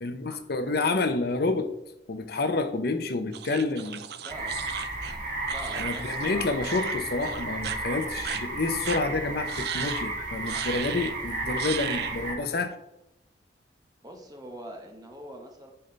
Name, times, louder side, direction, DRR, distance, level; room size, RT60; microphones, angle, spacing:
voice 1, 0.0-1.7 2.1-4.0 5.7-12.8, left 3 dB, 60° left, 9 dB, 0.7 m, -29 dB
sound 1, 3.3-6.3 6.6-7.0 7.2-7.8 8.2-8.4 8.8-9.0 9.5-10.0 10.5-11.1 11.6-12.2, right 8 dB, 60° right, 0.6 m, -36 dB
voice 2, 4.2-4.6 5.5-6.5 14.0-15.7, right 1 dB, 20° right, 2 dB, 1.2 m, -43 dB
sound 2, 4.3-12.3, right 2 dB, 45° right, 1.8 m, -33 dB
9.9 x 5.3 x 3.3 m, 0.87 s
head